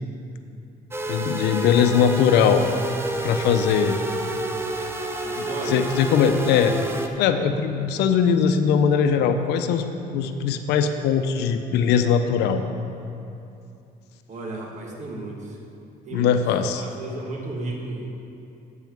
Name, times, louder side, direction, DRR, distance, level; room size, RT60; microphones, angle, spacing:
sound 1, 0.9-7.1, right 1 dB, 15° right, 0.7 m, -29 dB
voice 1, 1.1-2.6 3.2-4.0 5.4-6.8 7.2-9.8 10.1-12.6 16.1-16.8, left 7 dB, 85° left, 7 dB, 0.6 m, -20 dB
voice 2, 5.2-5.9 14.3-15.6 16.1-16.4 16.8-18.1, right 2 dB, 45° right, 0 dB, 1.4 m, -33 dB
8.2 x 5.6 x 7.4 m, 2.6 s
cardioid pair, 110°, 17 cm